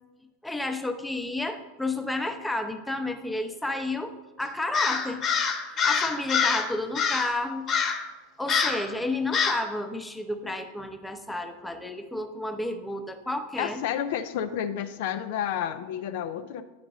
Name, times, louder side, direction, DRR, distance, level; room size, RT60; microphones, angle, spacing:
voice 1, 0.4-5.2 5.7-7.7 8.4-13.8, left 2 dB, 5° left, 6 dB, 0.7 m, -31 dB
Crow, 4.7-6.7 7.0-7.3 7.7-8.1 8.5-8.9 9.3-9.7, left 6 dB, 35° left, 1.0 m, -25 dB
voice 2, 13.6-16.6, left 9 dB, 55° left, 9 dB, 0.3 m, -30 dB
9.8 x 3.8 x 3.7 m, 1.2 s
figure-of-eight pair, 85°, 0 cm